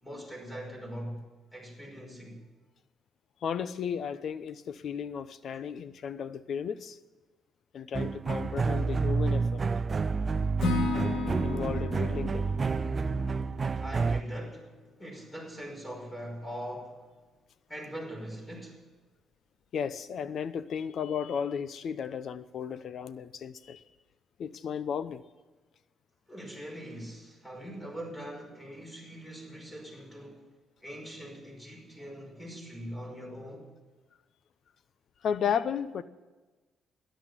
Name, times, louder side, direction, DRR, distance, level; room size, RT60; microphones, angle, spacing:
voice 1, 0.0-1.3 1.5-2.4 10.1-10.2 13.8-17.0 17.7-18.9 26.3-30.5 30.8-33.7, equal, 15° left, 5.5 m, -42 dB
voice 2, 3.4-7.0 7.7-9.6 11.4-12.5 19.7-23.8 24.4-25.2 35.2-36.0, left 7 dB, 60° left, 0.7 m, -34 dB
sound 1, 7.9-14.2, right 4 dB, 35° right, 0.4 m, -29 dB
Acoustic guitar / Strum, 10.6-14.6, left 3 dB, 80° left, 2.8 m, -35 dB
13.5 x 10.5 x 9.2 m
cardioid pair, 90°, 0 cm